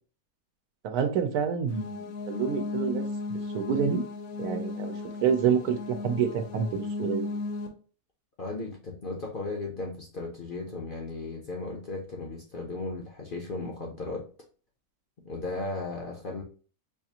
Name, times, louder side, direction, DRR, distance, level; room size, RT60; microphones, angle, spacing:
voice 1, 0.8-4.0 4.4-7.3, right 7 dB, 85° right, 1.1 m, -28 dB
sound 1, 1.7-7.7, left 3 dB, 70° left, 1.1 m, -35 dB
voice 2, 8.4-14.3 15.2-16.4, left 3 dB, 50° left, 0.6 m, -36 dB
4.6 x 2.4 x 2.8 m
omnidirectional pair, 1.6 m